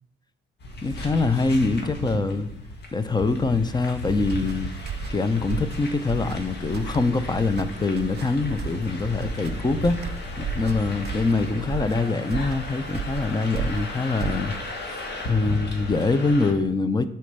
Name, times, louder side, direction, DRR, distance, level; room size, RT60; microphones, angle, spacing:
sound 1, 0.6-16.5, left 1 dB, 60° left, 1.7 m, -35 dB
voice 1, 0.8-2.5 2.9-4.7 5.1-14.5 14.9-15.0 15.3-17.1, left 3 dB, 20° left, 12 dB, 0.7 m, -24 dB
sound 2, 4.2-14.8, right 7 dB, 55° right, 0.5 m, -34 dB
8.3 x 4.4 x 6.7 m, 0.76 s
cardioid pair, 90°, 20 cm